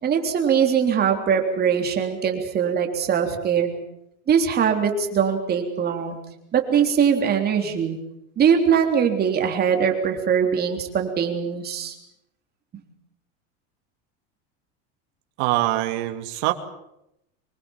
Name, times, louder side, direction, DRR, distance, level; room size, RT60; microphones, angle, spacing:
voice 1, 0.0-3.7 4.3-6.2 6.5-8.0 8.4-11.9, right 7 dB, 25° right, 4 dB, 3.6 m, -21 dB
voice 2, 15.4-16.5, right 16 dB, 65° right, 6 dB, 2.5 m, -23 dB
25.0 x 22.0 x 7.3 m, 0.81 s
supercardioid pair, 155°, 35 cm